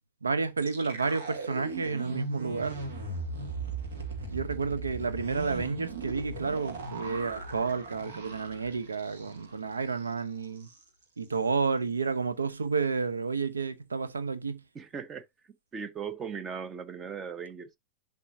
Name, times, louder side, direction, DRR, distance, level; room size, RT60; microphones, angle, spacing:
voice 1, 0.2-2.8 4.3-10.7 11.2-14.6, right 4 dB, 80° right, 0.9 m, -31 dB
sound 1, 0.6-9.6 9.9-10.1 10.4-10.8, right 3 dB, 65° right, 2.3 m, -38 dB
voice 2, 14.7-15.3 15.7-17.8, right 6 dB, 20° right, 1.0 m, -38 dB
11.0 x 3.8 x 2.7 m
figure-of-eight pair, 95°, 0 cm